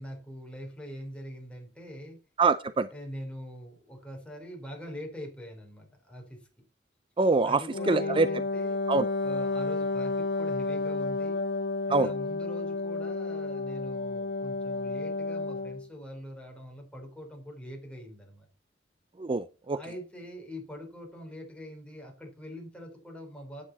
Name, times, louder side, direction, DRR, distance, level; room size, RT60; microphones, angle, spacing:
voice 1, 0.0-2.2 2.9-6.4 7.4-8.8 9.2-11.4 11.9-18.5 19.7-23.6, equal, 5° left, 1 dB, 4.0 m, -43 dB
voice 2, 2.4-2.9 7.2-8.3 8.9-9.1 11.9-12.1 19.2-19.8, right 3 dB, 30° right, 14 dB, 0.4 m, -25 dB
Wind instrument woodwind instrument, 7.7-15.9, left 3 dB, 75° left, 0.9 m, -31 dB
10.0 x 8.8 x 4.2 m, 0.32 s
head